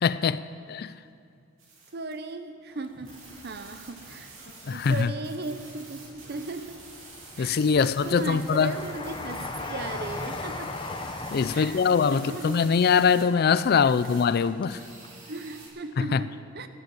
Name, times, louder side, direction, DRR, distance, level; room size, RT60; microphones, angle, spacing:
voice 1, 0.0-0.4 0.7-0.9 4.7-5.1 7.4-8.7 11.3-14.8 16.0-16.2, left 6 dB, 50° left, 0.3 m, -23 dB
sound 1, 1.6-2.1 3.0-15.7, right 3 dB, 75° right, 3.1 m, -48 dB
voice 2, 1.9-4.3 4.7-6.8 7.4-10.7 11.5-12.6 13.8-13.9 15.3-16.7, right 2 dB, 50° right, 0.7 m, -37 dB
Train, 2.8-4.1 4.5-5.5 6.0-14.8 15.0-15.1, left 2 dB, 25° left, 0.7 m, -39 dB
12.5 x 10.5 x 7.7 m
head